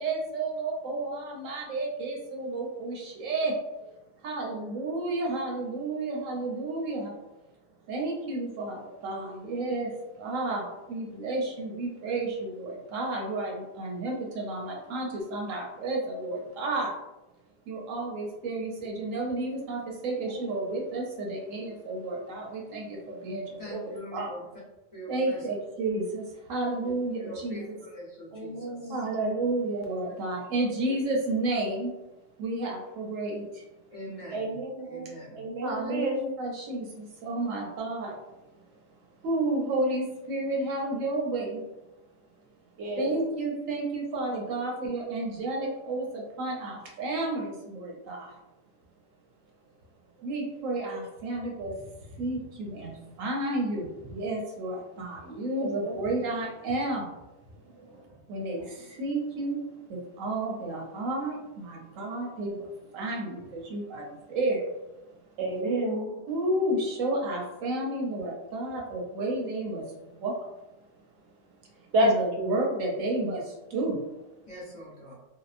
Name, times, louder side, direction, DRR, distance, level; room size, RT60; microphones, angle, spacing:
voice 1, 0.0-3.5 4.2-7.1 7.9-9.9 10.2-16.9 17.7-24.3 25.1-27.8 28.9-31.9 32.4-33.6 35.6-38.2 39.2-41.6 43.0-48.3 50.2-51.7 52.2-57.1 58.3-59.6 59.9-64.6 66.3-70.3 72.0-74.0, right 2 dB, 90° right, -1 dB, 1.1 m, -31 dB
voice 2, 23.6-24.4 24.9-25.4 26.8-26.9 27.2-29.0 30.9-31.0 33.9-34.6 34.9-35.4 74.5-75.1, equal, 35° left, -8 dB, 0.7 m, -43 dB
voice 3, 28.3-28.9 34.3-36.2 42.8-43.2 55.6-56.0 57.8-58.0 65.4-66.2 71.9-72.1 72.4-72.5, right 1 dB, 70° right, 0 dB, 0.8 m, -30 dB
2.8 x 2.0 x 2.4 m, 0.99 s
omnidirectional pair, 1.3 m